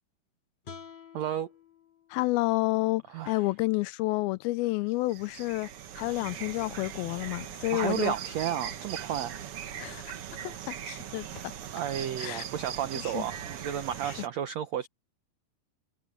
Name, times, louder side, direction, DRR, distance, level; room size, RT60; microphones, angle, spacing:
sound 1, 0.6-3.8, left 6 dB, 45° left, 3.4 m, -51 dB
voice 1, 1.1-1.5 3.1-3.4 7.7-9.4 11.3-14.9, right 10 dB, 85° right, 1.5 m, -33 dB
voice 2, 2.1-5.7 6.0-8.1 9.8-10.1 10.4-11.3 12.2-12.4 13.0-13.2, left 20 dB, 85° left, 2.5 m, -30 dB
sound 2, 4.9-14.3, right 9 dB, 65° right, 1.4 m, -40 dB
omnidirectional pair, 4.3 m